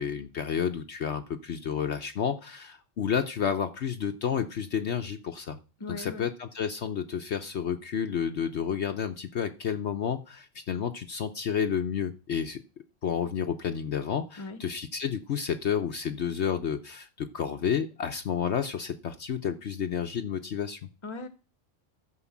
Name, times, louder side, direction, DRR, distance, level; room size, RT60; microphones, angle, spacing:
voice 1, 0.0-5.6 5.9-12.6 13.0-20.9, left 7 dB, 60° left, 7 dB, 1.0 m, -30 dB
voice 2, 5.8-6.3 14.4-14.6 21.0-21.3, left 3 dB, 25° left, 12 dB, 1.0 m, -38 dB
14.0 x 5.2 x 7.2 m, 0.33 s
omnidirectional pair, 1.4 m